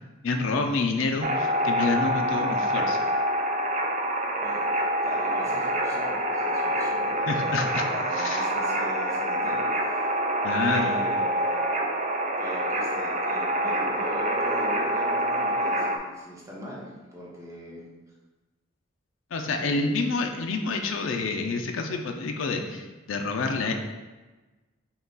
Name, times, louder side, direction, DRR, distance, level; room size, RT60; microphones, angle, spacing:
voice 1, 0.2-3.0 7.3-7.8 8.1-8.5 10.4-11.0 19.3-23.7, left 3 dB, 85° left, 3 dB, 0.5 m, -28 dB
sound 1, 1.2-16.0, right 1 dB, 40° right, 0.4 m, -26 dB
voice 2, 4.4-10.0 10.6-11.8 12.4-17.8 19.6-19.9, equal, 15° right, -5 dB, 1.0 m, -41 dB
5.7 x 2.4 x 3.9 m, 1.2 s
head